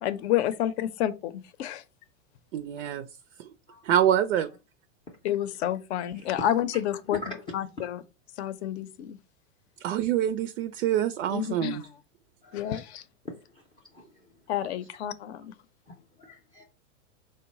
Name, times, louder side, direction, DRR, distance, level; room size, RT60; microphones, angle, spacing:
voice 1, 0.0-1.8 5.2-8.0 8.4-9.2 11.3-11.9 12.5-13.0 14.5-15.5, left 11 dB, 60° left, 0.6 m, -29 dB
voice 2, 2.5-3.0 3.8-4.5 9.8-11.8, right 10 dB, 75° right, 0.5 m, -25 dB
voice 3, 13.2-13.6 13.9-14.0 15.9-16.6, left 2 dB, 15° left, 0.4 m, -41 dB
3.9 x 2.1 x 4.0 m
hypercardioid pair, 130°, 37 cm